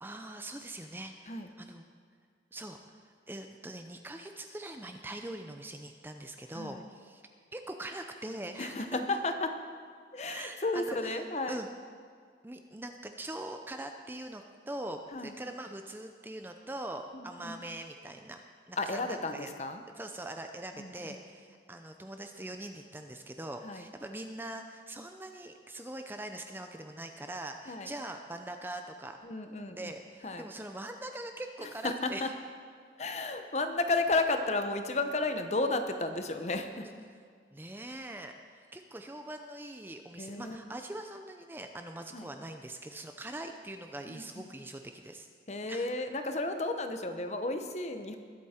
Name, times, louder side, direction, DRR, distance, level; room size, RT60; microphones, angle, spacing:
voice 1, 0.0-1.8 2.5-7.2 7.5-9.0 10.2-11.7 12.4-18.4 18.7-19.5 20.0-29.2 29.7-32.3 36.8-36.9 37.5-45.3 45.7-45.9, right 1 dB, 10° right, 5 dB, 0.5 m, -42 dB
voice 2, 8.6-9.5 10.1-11.6 15.1-15.3 17.1-17.6 18.8-19.8 20.8-21.2 23.6-23.8 27.7-27.9 29.2-29.9 30.2-30.5 31.8-32.3 33.0-36.9 40.2-40.6 42.1-42.2 44.1-44.4 45.5-48.2, left 2 dB, 40° left, 7 dB, 0.9 m, -33 dB
20.5 x 8.4 x 4.4 m, 2.1 s
head